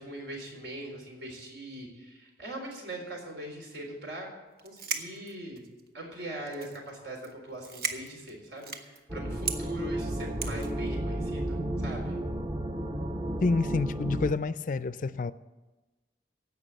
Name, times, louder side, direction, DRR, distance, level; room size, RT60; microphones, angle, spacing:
voice 1, 0.0-4.3 4.6-5.6 5.9-12.2, right 1 dB, 80° right, 3.9 m, -40 dB
sound 1, 4.6-5.9 6.5-6.9 7.2-7.3 7.6-9.0 9.4-9.6 10.4-10.7, right 6 dB, 55° right, 1.1 m, -35 dB
sound 2, 9.1-14.3, right 1 dB, 20° right, 0.7 m, -33 dB
voice 2, 13.4-15.3, left 3 dB, 45° left, 0.4 m, -28 dB
16.0 x 5.9 x 8.9 m
head